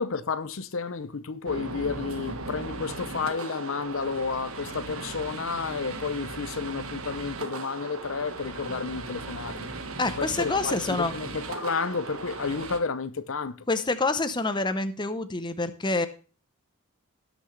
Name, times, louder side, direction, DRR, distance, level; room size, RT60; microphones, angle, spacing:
voice 1, 0.0-9.7 10.2-13.6, left 5 dB, 60° left, 0.6 m, -31 dB
sound 1, 1.5-12.8, right 3 dB, 75° right, 1.4 m, -37 dB
voice 2, 10.0-11.1 13.7-16.1, left 3 dB, 20° left, 0.8 m, -27 dB
17.5 x 6.1 x 3.2 m
head